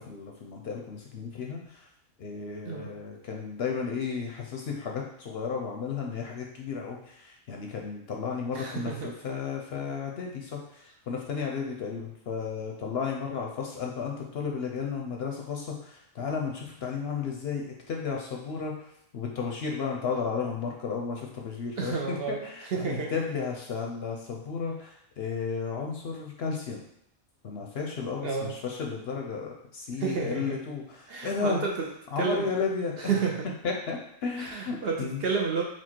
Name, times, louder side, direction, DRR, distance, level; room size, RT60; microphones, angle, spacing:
voice 1, 0.1-1.9 2.2-18.7 19.1-22.0 22.3-26.8 27.4-31.6 32.1-32.9 33.6-35.2, left 5 dB, 60° left, 0 dB, 0.7 m, -33 dB
voice 2, 8.5-9.1 21.8-23.1 28.2-28.6 30.0-30.6 31.1-31.9 32.2-32.5 33.0-33.5 34.4-35.6, right 5 dB, 60° right, 0 dB, 0.7 m, -30 dB
4.4 x 2.4 x 4.3 m, 0.74 s
omnidirectional pair, 1.4 m